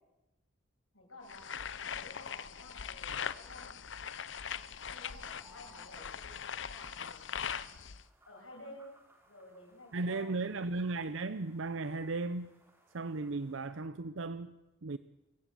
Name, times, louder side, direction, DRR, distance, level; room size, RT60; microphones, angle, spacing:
voice 1, 0.9-1.5 1.8-3.9 4.5-4.6 4.9-7.6 8.3-8.9 9.3-10.8, left 2 dB, 85° left, 7.4 m, -53 dB
sound 1, 1.3-8.0, left 7 dB, 65° left, 0.8 m, -41 dB
sound 2, 4.4-13.7, equal, 10° right, 3.3 m, -64 dB
voice 2, 9.9-12.5 12.9-15.0, right 3 dB, 75° right, 0.7 m, -36 dB
25.5 x 15.0 x 7.7 m
head